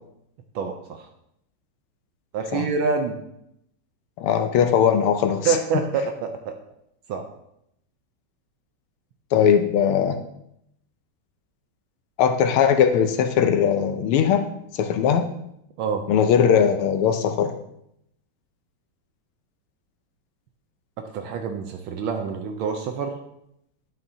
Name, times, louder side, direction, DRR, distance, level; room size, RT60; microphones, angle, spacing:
voice 1, 0.5-1.1 2.3-3.2 5.4-6.6 7.1-7.3 15.8-16.0 21.0-23.2, right 5 dB, 75° right, 5 dB, 1.4 m, -26 dB
voice 2, 4.2-5.6 9.3-10.2 12.2-14.4 14.7-15.3 16.1-17.5, left 8 dB, 80° left, 7 dB, 1.5 m, -19 dB
11.0 x 5.7 x 2.7 m, 0.78 s
omnidirectional pair, 2.4 m